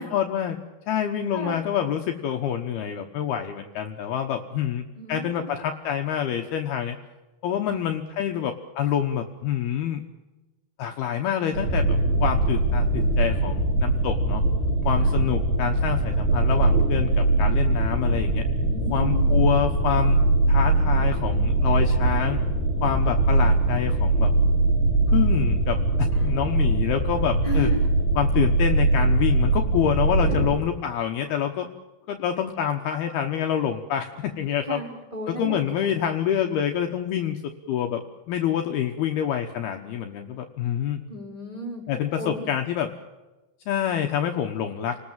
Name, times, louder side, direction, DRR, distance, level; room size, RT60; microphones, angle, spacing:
voice 1, 0.0-7.0 7.4-10.0 10.8-11.9 12.2-14.4 14.8-18.4 18.9-20.2 20.5-22.4 22.8-24.3 25.1-27.7 28.2-31.7 32.1-34.8 35.3-41.0 41.9-42.9 43.7-45.0, left 9 dB, 70° left, 4 dB, 2.7 m, -27 dB
voice 2, 4.9-5.5 7.7-7.8 14.9-15.2 18.7-19.4 26.1-26.3 27.4-27.9 30.3-30.5 34.7-36.0 41.1-41.8 42.2-42.5, right 1 dB, 10° right, 0 dB, 3.8 m, -34 dB
sound 1, 11.5-30.5, right 2 dB, 60° right, 6.5 m, -22 dB
30.0 x 19.5 x 7.5 m, 1.1 s
omnidirectional pair, 5.4 m